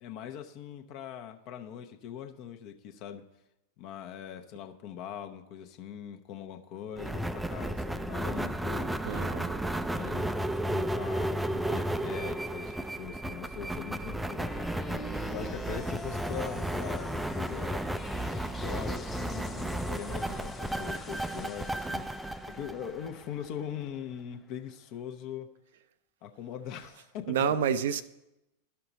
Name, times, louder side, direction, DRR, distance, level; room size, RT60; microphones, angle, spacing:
voice 1, 0.0-3.2 3.8-9.0 9.9-10.3 10.7-15.0 15.3-17.8 18.6-25.5 26.2-27.4 27.9-28.0, left 9 dB, 50° left, 0.8 m, -41 dB
sound 1, 7.0-23.5, right 1 dB, 5° right, 0.4 m, -33 dB
voice 2, 9.1-9.6 27.3-28.0, right 7 dB, 65° right, 0.4 m, -29 dB
sound 2, 14.4-24.4, left 3 dB, 20° left, 1.0 m, -46 dB
13.0 x 5.7 x 4.0 m
figure-of-eight pair, 90°, 0 cm